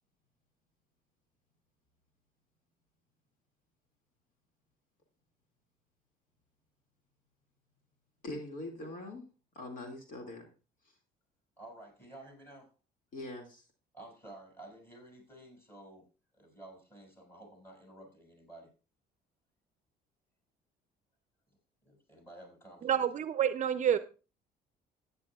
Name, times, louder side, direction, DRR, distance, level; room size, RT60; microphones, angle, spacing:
voice 1, 8.2-9.2 9.5-10.5 10.8-11.0 13.1-13.7, left 2 dB, 50° left, 2.2 m, -42 dB
voice 2, 11.6-12.7 13.9-16.0 16.3-18.7 21.8-23.0, right 1 dB, 15° left, 6.5 m, -52 dB
voice 3, 22.8-24.0, right 9 dB, 45° right, 0.6 m, -28 dB
15.0 x 9.6 x 2.4 m
cardioid pair, 110°, 17 cm